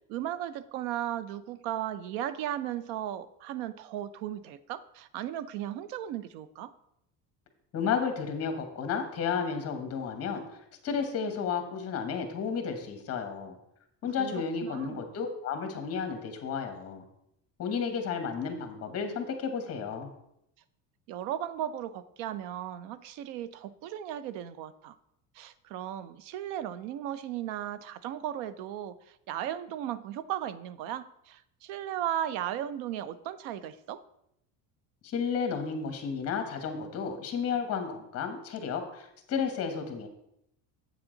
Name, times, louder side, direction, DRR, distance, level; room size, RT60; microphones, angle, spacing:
voice 1, 0.1-6.7 14.2-15.0 21.1-25.0 25.3-34.0, right 11 dB, 75° right, 15 dB, 0.6 m, -36 dB
voice 2, 7.7-13.6 14.0-17.0 17.6-20.1 35.0-40.1, left 6 dB, 35° left, 6 dB, 1.3 m, -32 dB
8.1 x 7.1 x 3.9 m, 0.79 s
cardioid pair, 155°, 43 cm